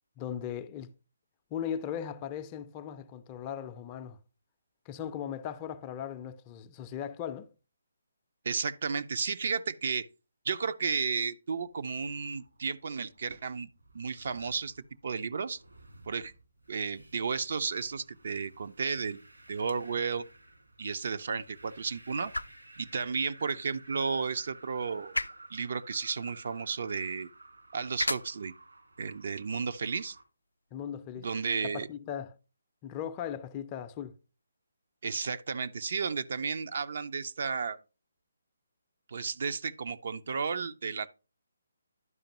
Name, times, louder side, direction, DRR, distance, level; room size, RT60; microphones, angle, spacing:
voice 1, 0.2-0.9 1.5-4.2 4.9-7.5 30.7-31.3 31.6-32.4 32.8-34.1, left 9 dB, 25° left, 0.5 m, -38 dB
voice 2, 8.4-10.1 10.5-13.7 13.9-15.6 16.1-16.3 16.7-19.2 19.5-20.2 20.8-22.3 22.8-25.2 25.5-27.3 27.7-28.5 29.0-30.2 31.2-31.9 35.0-37.8 39.1-41.1, right 5 dB, 55° right, 0.4 m, -33 dB
sound 1, 11.7-30.2, right 2 dB, 80° right, 1.8 m, -55 dB
sound 2, 19.5-31.6, left 2 dB, 90° left, 0.3 m, -42 dB
11.0 x 5.1 x 2.9 m
figure-of-eight pair, 145°, 0 cm